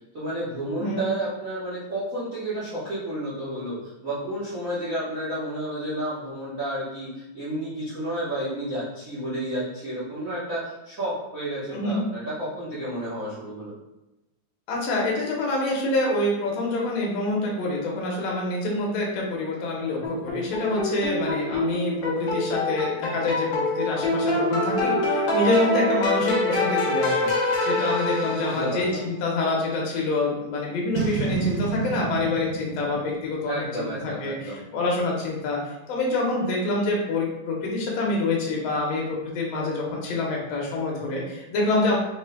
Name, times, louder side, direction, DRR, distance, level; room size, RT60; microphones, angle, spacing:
voice 1, 0.1-13.7 28.2-29.1 33.5-34.6, right 1 dB, 60° right, -11 dB, 0.8 m, -31 dB
voice 2, 11.7-12.0 14.7-42.0, left 2 dB, 70° left, -2 dB, 1.9 m, -26 dB
sound 1, 20.0-28.9, left 1 dB, 85° left, 1.0 m, -25 dB
Boom, 30.9-34.3, right 5 dB, 90° right, 2.1 m, -30 dB
5.1 x 3.9 x 2.2 m, 0.95 s
omnidirectional pair, 3.4 m